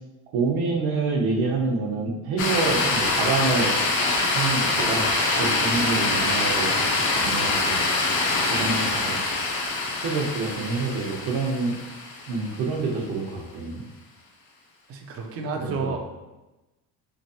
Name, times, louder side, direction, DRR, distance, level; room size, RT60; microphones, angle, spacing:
voice 1, 0.3-3.7 4.3-5.1 5.4-7.8 8.5-9.2 10.0-11.8 12.3-13.8 15.6-15.9, right 3 dB, 75° right, -1 dB, 0.9 m, -27 dB
sound 1, 2.4-12.7, left 3 dB, 35° left, 0.6 m, -24 dB
voice 2, 14.9-16.0, right 4 dB, 35° right, 3 dB, 0.4 m, -30 dB
3.5 x 3.2 x 2.7 m, 1.1 s
cardioid pair, 155°, 39 cm